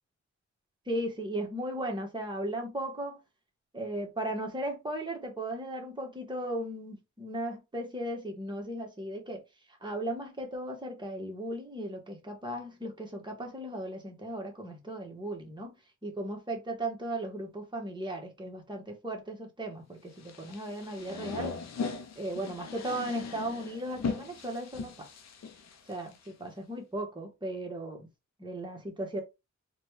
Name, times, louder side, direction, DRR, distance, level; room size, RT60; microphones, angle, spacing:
voice 1, 0.9-3.2 3.7-9.4 9.8-15.7 16.0-21.6 22.2-25.1 25.9-28.1 28.4-29.2, right 1 dB, 15° right, 1.3 m, -36 dB
sound 1, 20.2-26.3, left 5 dB, 65° left, 0.7 m, -39 dB
4.0 x 2.3 x 3.2 m
wide cardioid pair, 125°, 29 cm